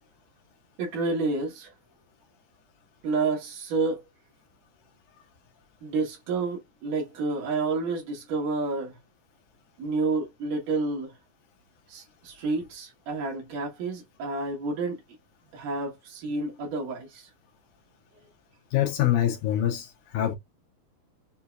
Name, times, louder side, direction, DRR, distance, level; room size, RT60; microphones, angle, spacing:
voice 1, 0.8-1.7 3.0-4.0 5.8-8.9 9.8-11.1 11.9-15.0 15.5-17.3, right 3 dB, 70° right, 3.0 m, -29 dB
voice 2, 18.7-20.4, left 12 dB, 75° left, 2.1 m, -25 dB
6.4 x 2.7 x 2.2 m
omnidirectional pair, 3.9 m